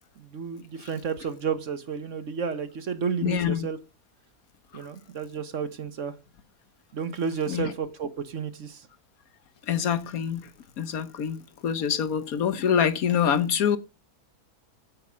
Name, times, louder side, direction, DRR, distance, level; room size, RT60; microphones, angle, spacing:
voice 1, 0.2-3.8 4.7-6.1 6.9-8.9, right 6 dB, 55° right, 1.4 m, -31 dB
voice 2, 3.2-3.7 4.7-4.8 7.5-7.7 9.6-10.5 10.8-13.8, left 8 dB, 70° left, 1.4 m, -25 dB
9.2 x 8.5 x 6.4 m
omnidirectional pair, 1.6 m